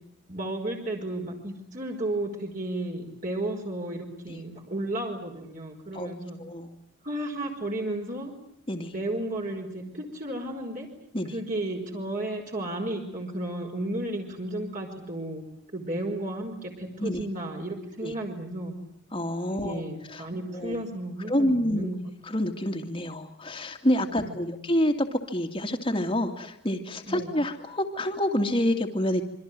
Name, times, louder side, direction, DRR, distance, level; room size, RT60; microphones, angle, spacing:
voice 1, 0.3-6.4 7.0-8.3 8.9-10.9 11.3-15.4 15.7-18.7 19.5-22.1 24.1-24.6 27.0-27.4, right 1 dB, 40° right, 1 dB, 5.2 m, -33 dB
voice 2, 6.4-6.7 8.7-8.9 11.1-11.3 17.0-17.2 18.0-18.1 19.1-19.8 20.1-20.3 20.5-20.8 21.3-21.9 22.2-29.2, left 1 dB, 25° left, 3 dB, 2.4 m, -27 dB
27.5 x 24.5 x 7.7 m, 0.75 s
head